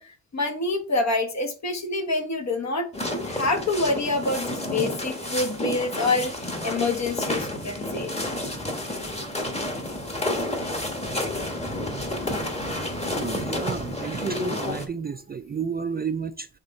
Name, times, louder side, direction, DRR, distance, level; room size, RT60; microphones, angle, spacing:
voice 1, 0.3-8.1, left 2 dB, 55° left, 1.5 m, -27 dB
sound 1, 2.9-14.8, left 1 dB, 20° left, 1.5 m, -30 dB
voice 2, 13.2-16.5, right 6 dB, 30° right, 0.4 m, -31 dB
7.9 x 3.5 x 4.2 m
cardioid pair, 100°, 34 cm